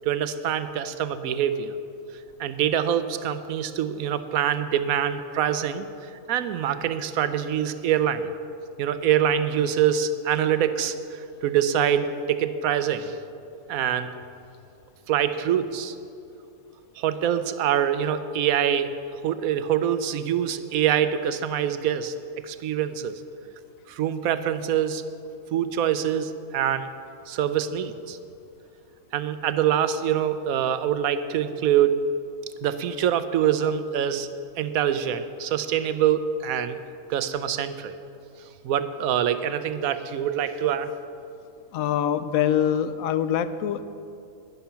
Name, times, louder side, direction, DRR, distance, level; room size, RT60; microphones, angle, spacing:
voice 1, 0.0-1.7 2.4-5.9 6.3-8.3 8.8-13.2 13.7-14.1 15.1-16.0 17.0-18.9 19.2-22.1 22.4-23.2 23.9-25.0 25.5-26.9 27.3-28.2 29.1-32.0 32.6-34.3 34.6-36.8 37.1-38.0 38.6-40.9, right 9 dB, 90° right, 12 dB, 1.1 m, -25 dB
voice 2, 41.7-43.8, left 9 dB, 80° left, 12 dB, 1.0 m, -24 dB
11.5 x 10.5 x 5.8 m, 2.5 s
omnidirectional pair, 1.5 m